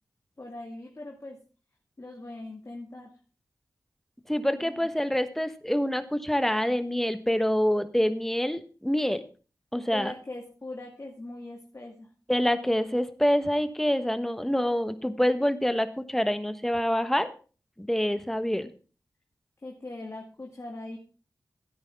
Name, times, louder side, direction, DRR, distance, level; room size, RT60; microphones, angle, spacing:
voice 1, 0.4-1.4 2.0-3.1 4.6-4.9 9.9-12.1 19.6-21.0, left 2 dB, 40° left, 0 dB, 2.1 m, -40 dB
voice 2, 4.3-9.2 9.7-10.1 12.3-17.3 17.8-18.7, equal, 5° left, 10 dB, 1.2 m, -26 dB
13.5 x 9.7 x 3.6 m, 0.36 s
cardioid pair, 50°, 7 cm